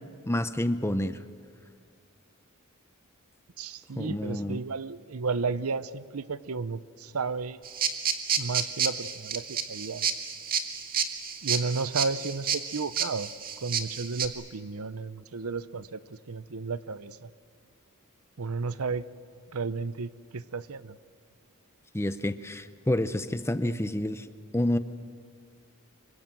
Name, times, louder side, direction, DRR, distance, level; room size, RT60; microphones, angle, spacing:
voice 1, 0.2-1.2 4.0-4.6 21.9-24.3 24.5-24.8, left 1 dB, 10° left, 11 dB, 0.8 m, -28 dB
voice 2, 3.6-7.6 8.4-10.1 11.4-13.3 13.6-17.3 18.4-19.0 19.5-21.0 23.6-23.8, right 4 dB, 80° right, 15 dB, 0.7 m, -33 dB
sound 1, 7.6-14.3, right 7 dB, 40° right, 1.9 m, -30 dB
26.5 x 24.0 x 7.7 m, 2.3 s
head